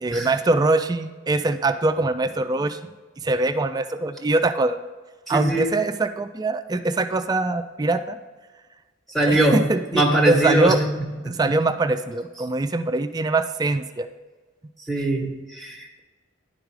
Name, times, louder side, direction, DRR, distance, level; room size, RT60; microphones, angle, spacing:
voice 1, 0.0-2.8 3.2-4.8 5.3-8.2 9.2-10.8 11.2-14.1, right 2 dB, 20° right, 9 dB, 0.3 m, -23 dB
voice 2, 5.3-5.8 9.1-11.4 14.9-16.0, right 1 dB, ahead, 1 dB, 1.2 m, -22 dB
10.0 x 5.1 x 4.7 m, 1.3 s
head